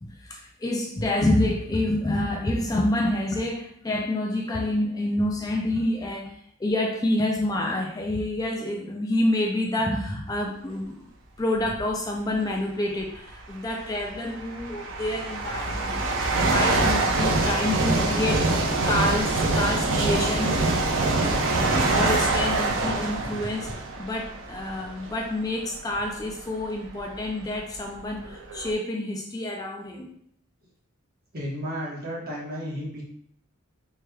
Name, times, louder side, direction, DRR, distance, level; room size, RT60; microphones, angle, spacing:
voice 1, 0.0-11.1 11.4-20.6 21.7-30.1, left 1 dB, 20° left, 1 dB, 0.4 m, -28 dB
sound 1, 11.6-11.9 13.0-13.1 13.9-25.3 25.9-26.0 26.8-26.9 27.1-28.7, right 2 dB, 65° right, 0.6 m, -25 dB
voice 2, 31.3-33.0, equal, 45° right, -4 dB, 1.2 m, -33 dB
4.6 x 3.3 x 2.3 m, 0.67 s
head